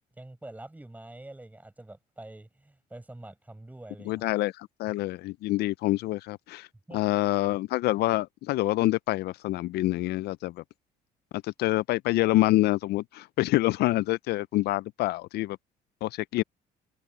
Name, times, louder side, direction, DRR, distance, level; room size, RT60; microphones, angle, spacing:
voice 1, 0.1-4.1 6.9-7.2, right 2 dB, 10° right, 5.9 m, -46 dB
voice 2, 4.1-6.7 6.9-10.6 11.4-15.6 16.0-16.4, left 17 dB, 70° left, 0.4 m, -26 dB
cardioid pair, 110°, 17 cm